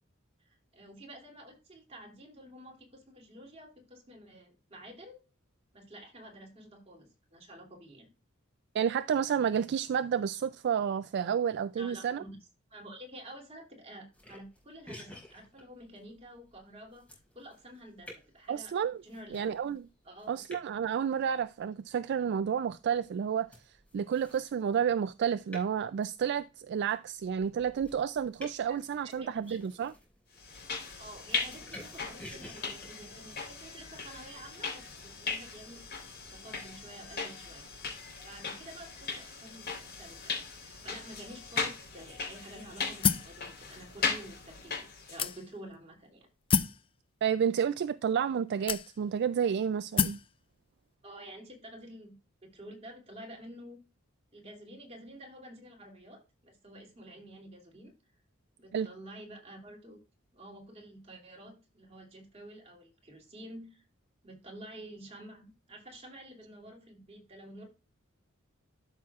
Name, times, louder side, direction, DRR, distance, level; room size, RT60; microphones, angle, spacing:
voice 1, 0.4-5.2 5.7-8.1 11.8-12.4 12.7-18.7 19.0-19.5 20.0-20.4 28.7-29.6 31.0-35.8 36.3-37.6 38.2-39.7 40.0-46.3 51.0-52.2 52.4-53.8 54.3-57.9 58.6-60.0 60.3-63.8 64.2-67.7, right 1 dB, 30° right, 2.7 m, -50 dB
voice 2, 8.7-12.2 18.5-19.0 19.3-19.9 20.3-23.5 23.9-29.9 47.2-50.2 58.7-58.9, right 7 dB, 55° right, 0.3 m, -30 dB
sound 1, 14.1-33.4, left 1 dB, 5° left, 5.4 m, -53 dB
sound 2, 30.4-45.3, left 4 dB, 50° left, 3.7 m, -38 dB
sound 3, 43.0-43.4 44.2-44.3 45.2-45.7 46.5-46.8 47.8-47.9 48.7-49.2 50.0-50.3, left 6 dB, 25° left, 0.4 m, -28 dB
12.5 x 6.1 x 2.4 m
head